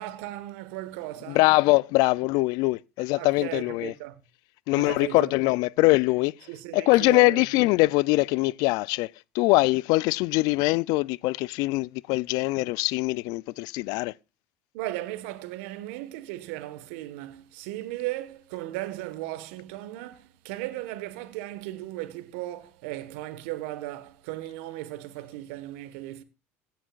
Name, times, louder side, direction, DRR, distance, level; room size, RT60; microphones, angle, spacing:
voice 1, 0.0-1.5 3.2-4.2 4.7-5.3 6.5-7.4 14.7-26.2, right 16 dB, 70° right, 1.5 m, -36 dB
voice 2, 1.3-3.9 4.7-6.3 6.7-14.1, left 22 dB, 65° left, 0.5 m, -23 dB
16.5 x 10.0 x 2.5 m
hypercardioid pair, 70°, 7 cm